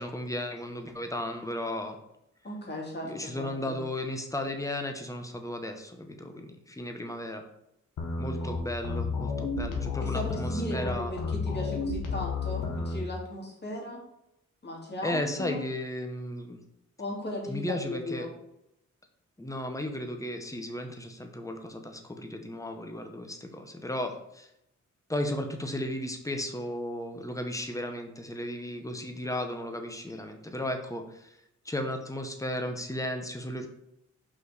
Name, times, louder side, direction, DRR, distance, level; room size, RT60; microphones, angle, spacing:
voice 1, 0.0-2.0 3.0-7.4 8.2-11.1 15.0-16.6 17.5-18.3 19.4-24.5 25.1-31.4 31.6-33.7, left 1 dB, 10° left, 5 dB, 1.0 m, -35 dB
voice 2, 2.4-3.8 10.0-14.0 14.6-15.6 17.0-18.3, left 1 dB, 35° left, -1 dB, 2.4 m, -37 dB
sound 1, 8.0-13.0, left 4 dB, 85° left, 1.5 m, -32 dB
5.5 x 4.7 x 4.9 m, 0.81 s
cardioid pair, 105°, 30 cm